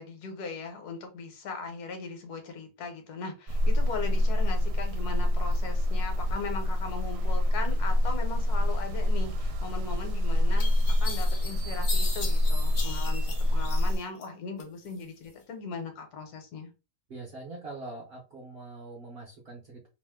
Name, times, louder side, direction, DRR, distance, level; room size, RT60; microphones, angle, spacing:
voice 1, 0.0-16.7, left 4 dB, 70° left, 1.2 m, -39 dB
sound 1, 3.5-14.0, left 1 dB, 80° right, 1.1 m, -26 dB
sound 2, 9.9-10.0 10.6-14.3 14.6-15.3, left 3 dB, 50° left, 0.7 m, -39 dB
voice 2, 17.1-19.9, right 3 dB, 50° right, 0.7 m, -43 dB
2.9 x 2.0 x 3.4 m
omnidirectional pair, 1.8 m